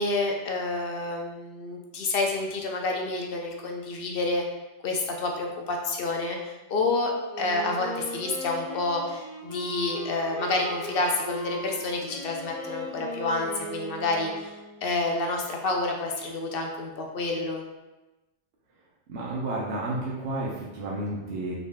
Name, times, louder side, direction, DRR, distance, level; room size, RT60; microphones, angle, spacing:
voice 1, 0.0-4.4 4.8-7.1 7.4-17.6, left 2 dB, 60° left, 2 dB, 0.8 m, -29 dB
Wind instrument woodwind instrument, 7.3-15.0, equal, 15° left, 0.7 m, -38 dB
voice 2, 19.1-21.5, right 2 dB, 70° right, -4 dB, 1.0 m, -31 dB
4.0 x 3.1 x 3.5 m, 1.1 s
omnidirectional pair, 1.2 m